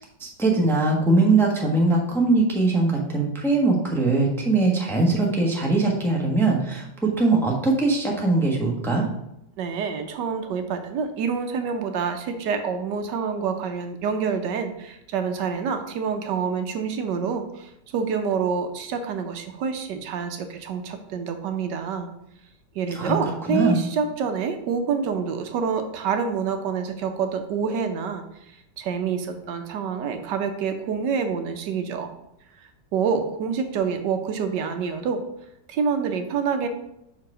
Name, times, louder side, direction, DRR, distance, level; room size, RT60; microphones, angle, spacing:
voice 1, 0.2-6.8 7.2-9.0 22.9-23.1 23.5-23.8, right 3 dB, ahead, -1 dB, 1.0 m, -21 dB
voice 2, 9.6-22.1 22.7-28.2 28.8-32.1 32.6-35.2 35.7-36.7, right 6 dB, 75° right, 6 dB, 1.3 m, -27 dB
6.1 x 4.7 x 4.9 m, 0.83 s
omnidirectional pair, 2.0 m